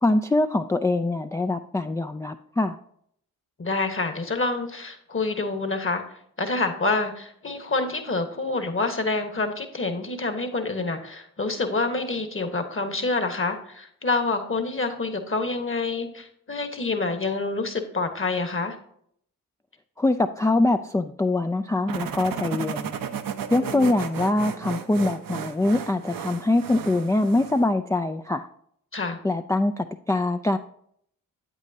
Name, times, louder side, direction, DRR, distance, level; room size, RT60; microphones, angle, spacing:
voice 1, 0.0-2.8 20.0-23.0 23.5-28.5 29.2-30.6, left 2 dB, 10° left, 6 dB, 0.3 m, -23 dB
voice 2, 3.6-6.0 6.4-18.8 23.6-23.9 28.9-29.2, left 3 dB, 35° left, 7 dB, 1.3 m, -27 dB
sound 1, 21.9-27.7, right 8 dB, 65° right, 0.7 m, -34 dB
8.3 x 8.2 x 2.7 m, 0.68 s
supercardioid pair, 45°, 37 cm